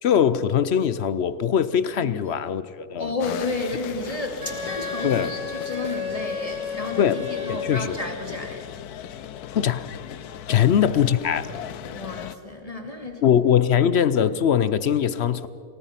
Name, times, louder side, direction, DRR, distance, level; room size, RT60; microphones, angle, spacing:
voice 1, 0.0-3.2 5.0-5.3 7.0-8.0 9.5-9.9 10.5-11.5 13.2-15.5, left 8 dB, 60° left, 0.7 m, -21 dB
voice 2, 3.0-8.6 10.5-10.7 11.9-13.2, left 2 dB, 25° left, 2.5 m, -32 dB
sound 1, 3.2-12.3, left 10 dB, 85° left, 1.3 m, -37 dB
Wind instrument woodwind instrument, 4.4-8.0, left 5 dB, 80° right, 2.8 m, -33 dB
28.5 x 19.0 x 5.8 m
omnidirectional pair, 1.6 m